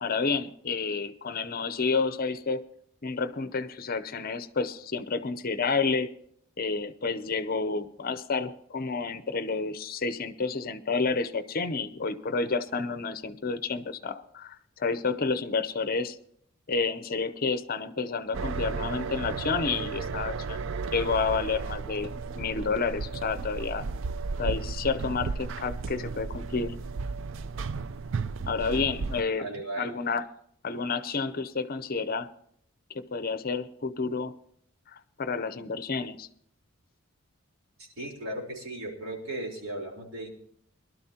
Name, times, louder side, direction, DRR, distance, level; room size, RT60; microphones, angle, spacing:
voice 1, 0.0-2.6 3.0-6.1 6.6-16.2 16.7-23.9 24.4-26.7 28.5-29.5 29.8-30.3 30.6-32.3 32.9-34.3 34.9-36.3, left 4 dB, 45° left, 13 dB, 0.7 m, -30 dB
sound 1, 18.3-29.2, right 4 dB, 60° right, 0.4 m, -34 dB
voice 2, 29.4-29.9 37.8-40.3, right 1 dB, 85° right, -1 dB, 3.9 m, -36 dB
22.0 x 12.5 x 2.9 m, 0.67 s
head